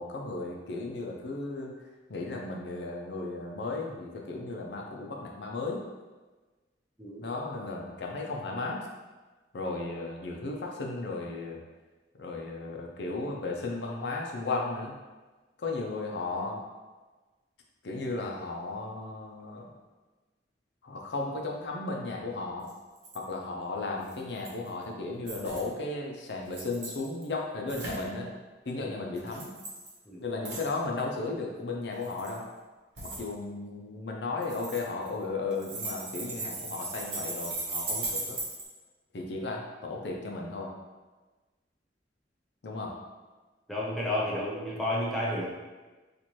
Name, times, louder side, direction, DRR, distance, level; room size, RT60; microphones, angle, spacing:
voice 1, 0.0-1.7 2.1-5.8 7.2-8.8 9.5-11.6 12.2-14.9 15.6-16.6 17.8-19.6 20.8-22.7 23.1-28.3 28.7-29.6 30.2-32.4 33.0-38.4 39.1-40.7 42.6-43.0, left 3 dB, 70° left, 0 dB, 0.6 m, -35 dB
sound 1, 22.7-22.8 23.0-23.2 24.1-24.7 25.3-25.6 26.4-27.2 27.7-28.1 29.1-29.9 30.4-30.7 31.9-32.4 33.0-33.2 34.4-35.2 35.5-38.6, right 2 dB, 80° right, 1.0 m, -37 dB
voice 2, 43.7-45.5, left 1 dB, ahead, -7 dB, 0.7 m, -31 dB
4.2 x 2.5 x 3.0 m, 1.2 s
head